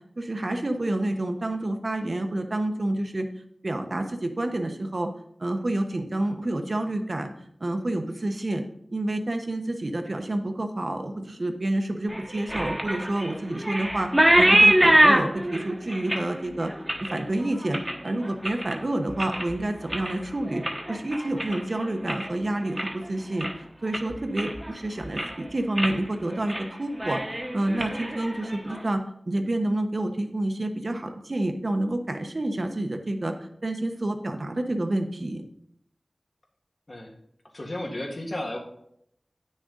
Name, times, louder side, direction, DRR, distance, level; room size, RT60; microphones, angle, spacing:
voice 1, 0.2-3.3 3.6-5.1 5.4-7.3 7.6-8.6 8.9-14.1 14.4-16.7 17.0-20.6 20.9-23.5 23.8-27.2 27.5-33.3 33.6-35.4, right 1 dB, 55° right, 5 dB, 0.9 m, -28 dB
sound 1, 12.1-18.8 19.1-19.6 19.9-22.3 22.6-23.1 23.4-23.5 23.9-24.7 25.0-25.4 25.8-26.0 26.3-26.7 26.9-28.8, right 1 dB, 15° right, 1.1 m, -24 dB
voice 2, 37.5-38.6, left 1 dB, 60° left, 1 dB, 1.7 m, -33 dB
9.2 x 6.4 x 3.9 m, 0.72 s
wide cardioid pair, 65°, 0 cm